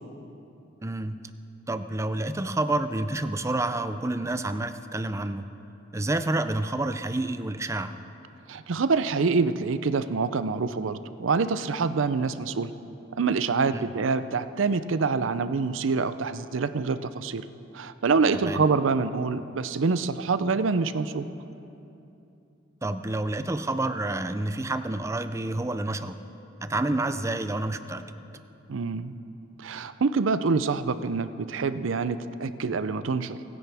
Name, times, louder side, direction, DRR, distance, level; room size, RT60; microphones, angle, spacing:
voice 1, 0.8-1.2 1.7-5.5 5.9-7.9 13.7-13.9 18.4-18.6 22.8-26.2 26.6-28.1, right 2 dB, 15° right, 10 dB, 0.5 m, -29 dB
voice 2, 8.5-12.7 13.2-17.4 17.7-21.3 28.7-29.1 29.6-33.4, right 4 dB, 85° right, 12 dB, 0.5 m, -26 dB
27.0 x 10.0 x 3.5 m, 2.8 s
head